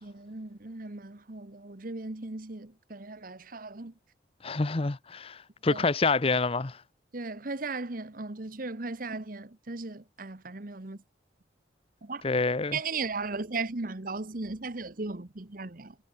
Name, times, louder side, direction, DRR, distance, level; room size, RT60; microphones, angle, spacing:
voice 1, 0.0-3.9 5.7-5.8 7.1-11.0 12.0-12.2 12.7-15.9, right 3 dB, 50° right, 1.2 m, -37 dB
voice 2, 4.4-6.8 12.2-12.8, left 3 dB, 30° left, 0.7 m, -27 dB
head